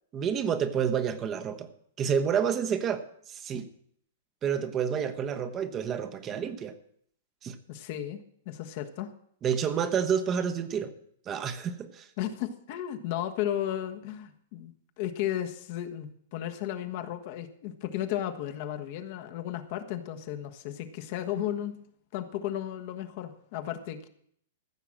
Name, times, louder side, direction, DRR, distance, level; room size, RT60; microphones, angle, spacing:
voice 1, 0.1-1.7 2.0-3.0 3.3-3.7 4.4-6.7 7.4-7.6 9.4-10.9 11.3-12.1, right 7 dB, 25° right, 8 dB, 1.0 m, -29 dB
voice 2, 7.7-9.1 12.2-14.7 15.0-21.7 22.1-24.1, left 11 dB, 50° left, 7 dB, 1.3 m, -34 dB
15.0 x 5.9 x 7.6 m, 0.67 s
hypercardioid pair, 130°, 0 cm